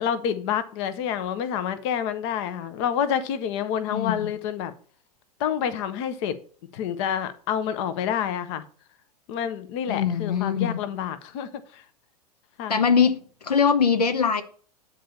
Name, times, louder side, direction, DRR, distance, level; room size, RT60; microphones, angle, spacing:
voice 1, 0.0-4.7 5.4-6.4 6.7-8.6 9.3-11.8 12.6-12.8, left 8 dB, 45° left, 0.9 m, -28 dB
voice 2, 3.9-4.3 9.9-10.8 12.7-14.4, left 6 dB, 75° left, 0.9 m, -22 dB
8.9 x 4.1 x 6.8 m
figure-of-eight pair, 90°, 20 cm